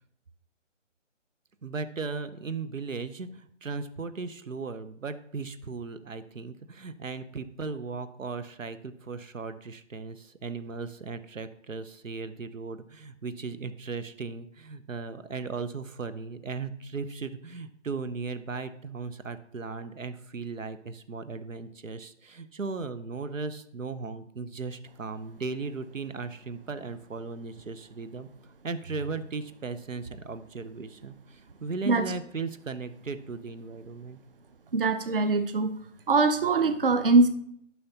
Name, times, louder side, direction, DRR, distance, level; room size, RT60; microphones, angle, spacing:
voice 1, 1.6-28.3 28.6-34.2, right 4 dB, 85° right, 12 dB, 0.8 m, -37 dB
voice 2, 34.7-35.7 36.1-37.3, right 3 dB, 45° right, 9 dB, 0.7 m, -22 dB
12.5 x 5.8 x 2.8 m, 0.71 s
figure-of-eight pair, 160°, 38 cm